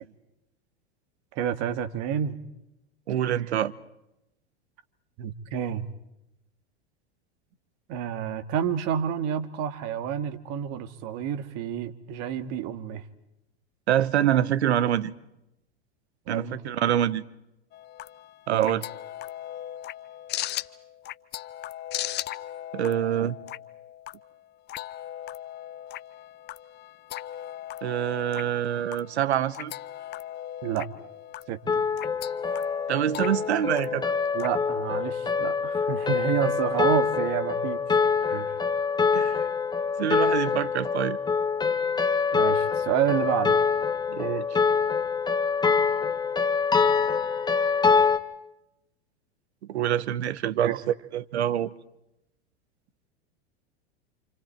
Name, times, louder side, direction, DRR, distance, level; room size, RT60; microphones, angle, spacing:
voice 1, 1.4-2.4 5.2-5.9 7.9-13.0 16.3-16.6 18.5-18.7 30.6-30.9 31.5-31.8 34.3-37.8 38.2-38.6 42.3-43.6 50.6-50.8, right 9 dB, 50° right, 2.1 m, -29 dB
voice 2, 3.1-3.7 13.9-15.1 16.3-17.2 18.5-18.8 22.7-23.4 27.8-29.7 32.9-34.1 39.1-39.4 40.0-41.2 44.1-44.5 49.7-50.8 51.1-51.7, right 11 dB, 90° right, 1.2 m, -25 dB
sound 1, 17.7-34.5, left 13 dB, 35° left, 0.8 m, -38 dB
sound 2, 31.7-48.2, left 5 dB, 15° left, 1.6 m, -25 dB
29.0 x 28.5 x 4.5 m
hypercardioid pair, 115°, 32 cm